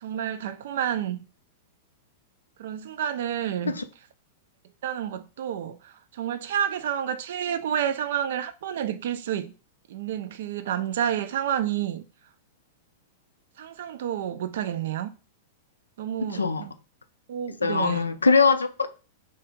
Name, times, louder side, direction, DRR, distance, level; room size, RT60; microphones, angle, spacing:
voice 1, 0.0-1.2 2.6-3.8 4.8-9.5 9.9-12.0 13.6-15.1 16.0-16.7 17.3-18.1, right 9 dB, 60° right, 0.3 m, -29 dB
voice 2, 16.2-16.7 17.6-19.0, left 4 dB, 80° left, 0.3 m, -22 dB
2.9 x 2.4 x 3.5 m
figure-of-eight pair, 95°, 0 cm